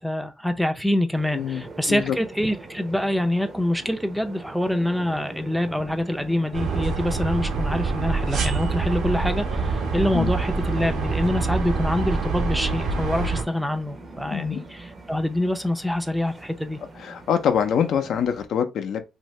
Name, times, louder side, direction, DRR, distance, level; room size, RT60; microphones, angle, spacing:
voice 1, 0.0-16.8, left 1 dB, 5° right, 0.5 m, -25 dB
sound 1, 1.1-18.5, right 3 dB, 45° right, 0.6 m, -43 dB
sound 2, 6.5-13.4, right 4 dB, 80° right, 0.9 m, -25 dB
voice 2, 17.0-19.0, left 8 dB, 70° left, 0.5 m, -24 dB
2.7 x 2.6 x 3.1 m
cardioid pair, 90°, 0 cm